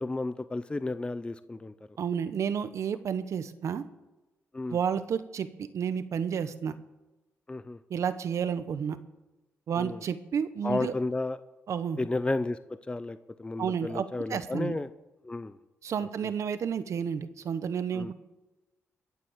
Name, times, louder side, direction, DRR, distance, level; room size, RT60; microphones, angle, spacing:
voice 1, 0.0-1.7 4.5-4.8 7.5-7.8 9.8-10.0 10.6-11.4 12.0-14.9 15.2-15.6 16.2-16.3 17.9-18.1, left 2 dB, 20° left, 12 dB, 0.6 m, -32 dB
voice 2, 2.0-3.9 4.7-6.7 7.9-9.0 9.7-10.9 11.7-12.0 13.6-14.8 15.8-18.1, right 7 dB, 70° right, 12 dB, 1.1 m, -31 dB
22.0 x 7.6 x 7.4 m, 1.1 s
cardioid pair, 80°, 5 cm